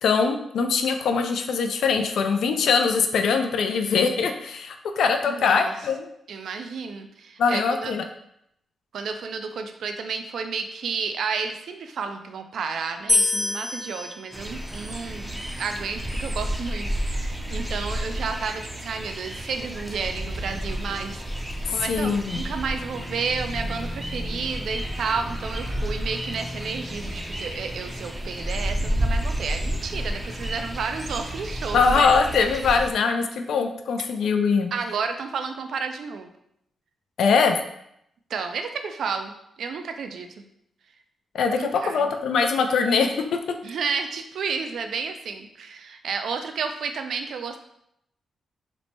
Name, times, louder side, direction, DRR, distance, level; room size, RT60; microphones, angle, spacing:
voice 1, 0.0-6.1 7.4-8.0 21.8-22.4 31.7-34.7 37.2-37.6 41.3-43.6, left 5 dB, 80° left, 6 dB, 0.3 m, -22 dB
voice 2, 5.3-5.7 6.3-7.9 8.9-21.2 21.7-32.1 34.7-36.3 38.3-40.3 41.5-42.1 43.6-47.6, right 5 dB, 75° right, 6 dB, 0.3 m, -31 dB
sound 1, 13.1-16.3, left 2 dB, 25° left, 0.7 m, -28 dB
sound 2, 14.3-32.9, equal, 10° right, 0.5 m, -31 dB
3.0 x 2.1 x 4.1 m, 0.76 s
cardioid pair, 85°, 0 cm